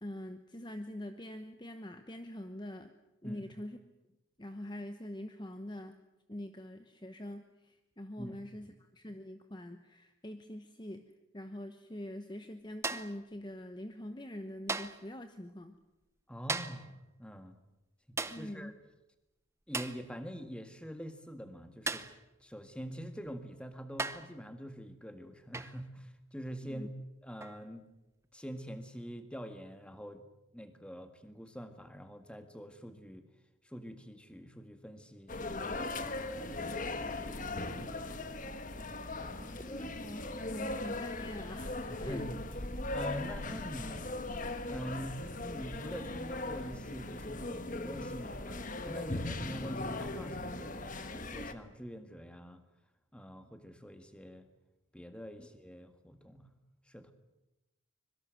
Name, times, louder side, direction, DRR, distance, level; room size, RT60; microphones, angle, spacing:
voice 1, 0.0-2.9 3.2-3.8 4.4-6.0 6.3-15.8 18.3-18.7 26.6-26.9 39.4-42.3 55.4-55.5, left 1 dB, 20° left, 8 dB, 1.0 m, -44 dB
voice 2, 8.2-8.8 16.3-17.6 18.1-18.7 19.7-22.1 22.4-26.9 27.2-27.9 28.3-30.3 30.5-33.3 33.6-38.5 39.2-39.6 41.9-42.4 42.9-44.1 44.7-52.6 53.1-54.5 54.9-56.5 56.9-57.1, equal, 5° left, 8 dB, 1.7 m, -45 dB
sound 1, 12.8-13.2 14.7-15.1 16.5-16.9 18.2-18.5 19.7-20.0 21.9-22.2 23.3-23.4 24.0-24.4 25.5-25.8 27.4-27.6, right 3 dB, 15° right, 0.8 m, -37 dB
sound 2, 35.3-51.5, left 2 dB, 40° left, 1.5 m, -39 dB
25.0 x 22.5 x 7.7 m, 0.96 s
head